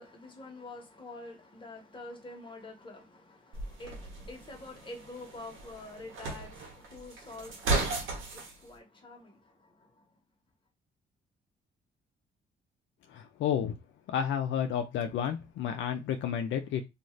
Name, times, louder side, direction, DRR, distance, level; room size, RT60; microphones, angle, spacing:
voice 1, 0.0-10.1, left 2 dB, 25° left, 1.1 m, -47 dB
sound 1, 3.5-8.5, right 3 dB, 85° right, 1.1 m, -35 dB
voice 2, 13.1-13.8 14.1-16.8, left 8 dB, 70° left, 0.4 m, -31 dB
2.5 x 2.4 x 3.1 m
cardioid pair, 90°, 20 cm